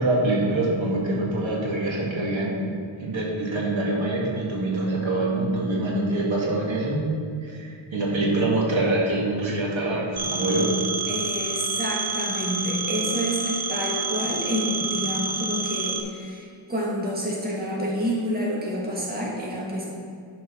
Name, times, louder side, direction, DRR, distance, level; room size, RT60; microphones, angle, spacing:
voice 1, 0.0-2.7 3.0-7.1 7.4-10.8, right 2 dB, 70° right, -4 dB, 2.1 m, -25 dB
Telephone, 10.2-16.0, right 4 dB, 50° right, 1.0 m, -29 dB
voice 2, 11.1-19.8, equal, 20° right, -4 dB, 1.7 m, -28 dB
10.5 x 4.6 x 5.8 m, 2.3 s
wide cardioid pair, 135°, 49 cm